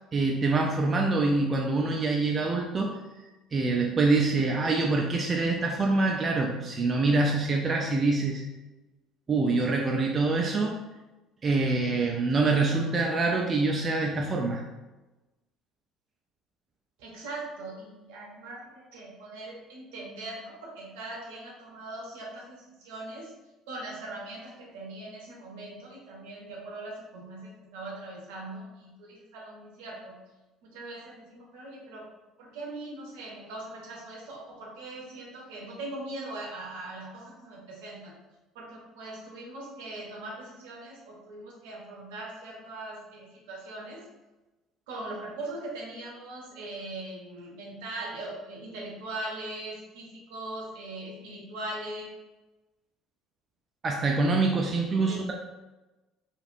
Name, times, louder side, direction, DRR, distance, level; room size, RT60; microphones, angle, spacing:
voice 1, 0.1-3.0 3.5-8.4 9.3-10.8 11.4-14.6 53.8-55.3, right 3 dB, 35° right, 0 dB, 0.4 m, -25 dB
voice 2, 17.0-23.3 23.7-30.2 30.6-32.0 32.4-38.1 38.5-44.0 44.9-52.1 55.1-55.3, right 2 dB, 75° right, -3 dB, 0.8 m, -40 dB
3.2 x 2.4 x 2.5 m, 1.1 s
hypercardioid pair, 60°, 0 cm